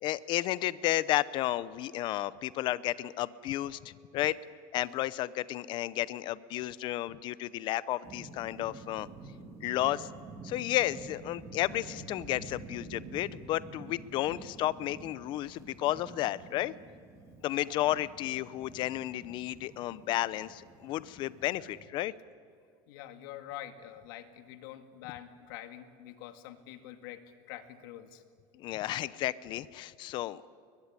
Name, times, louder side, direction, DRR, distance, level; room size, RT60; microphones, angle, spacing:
voice 1, 0.0-4.4 4.7-9.1 9.6-10.1 10.4-16.7 17.4-22.1 28.5-30.4, left 15 dB, 45° left, 17 dB, 0.7 m, -32 dB
sound 1, 8.0-21.9, right 3 dB, 25° right, 3.2 m, -49 dB
voice 2, 22.9-27.2 27.5-28.2, left 12 dB, 75° left, 7 dB, 2.1 m, -46 dB
22.0 x 22.0 x 9.8 m, 2.1 s
supercardioid pair, 145°, 11 cm